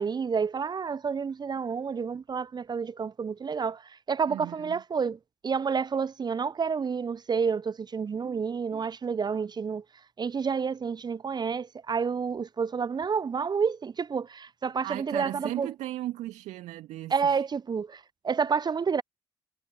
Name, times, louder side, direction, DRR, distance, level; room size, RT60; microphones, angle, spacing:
voice 1, 0.0-3.8 4.1-9.8 10.2-15.7 17.1-19.0, right 6 dB, 35° right, 0.7 m, -29 dB
voice 2, 4.3-4.8 8.2-8.4 8.7-8.9 14.8-17.4, right 15 dB, 70° right, 2.2 m, -37 dB
hypercardioid pair, 45°, 12 cm